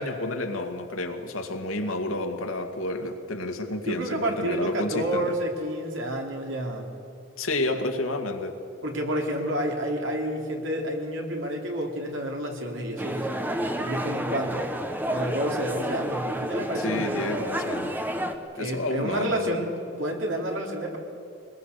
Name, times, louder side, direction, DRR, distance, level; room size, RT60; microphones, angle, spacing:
voice 1, 0.0-5.3 7.4-8.6 16.8-18.0 18.5-19.6, left 2 dB, 80° left, 4 dB, 2.1 m, -30 dB
voice 2, 3.8-6.9 8.8-13.3 13.8-17.5 18.5-19.7 20.0-21.0, right 1 dB, 65° right, 1 dB, 3.4 m, -30 dB
sound 1, 13.0-18.3, right 1 dB, 10° right, 1.2 m, -30 dB
23.0 x 21.0 x 6.8 m, 2.6 s
head